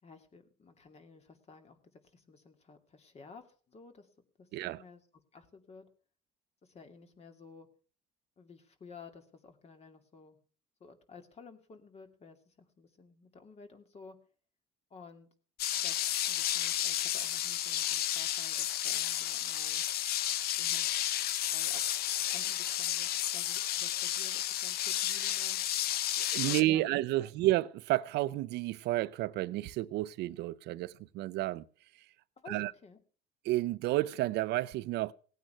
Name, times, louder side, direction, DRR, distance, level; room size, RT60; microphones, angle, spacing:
voice 1, 0.0-4.1 4.4-5.0 5.3-5.8 6.6-7.7 8.4-10.4 10.8-14.2 14.9-15.3 15.7-19.8 20.6-21.0 21.5-21.8 22.3-25.6 26.4-26.8 27.2-27.3 32.4-33.0, left 4 dB, 40° left, 2.6 m, -54 dB
sound 1, 15.6-26.6, left 12 dB, 65° left, 0.7 m, -32 dB
voice 2, 26.2-31.6 32.5-32.7 33.4-35.1, right 16 dB, 85° right, 0.7 m, -31 dB
18.0 x 9.2 x 5.7 m
cardioid pair, 110°, 17 cm